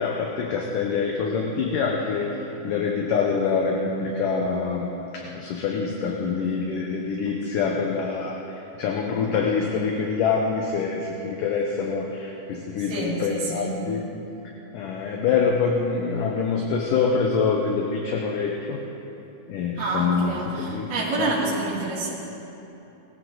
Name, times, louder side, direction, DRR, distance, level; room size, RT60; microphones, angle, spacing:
voice 1, 0.0-2.4 2.6-8.4 8.8-14.1 14.7-18.8 19.5-20.9 21.2-21.3, left 5 dB, 70° left, 1 dB, 2.2 m, -25 dB
voice 2, 12.8-13.9 19.8-22.1, right 2 dB, 70° right, -7 dB, 4.7 m, -28 dB
19.5 x 15.0 x 3.9 m, 2.9 s
omnidirectional pair, 4.6 m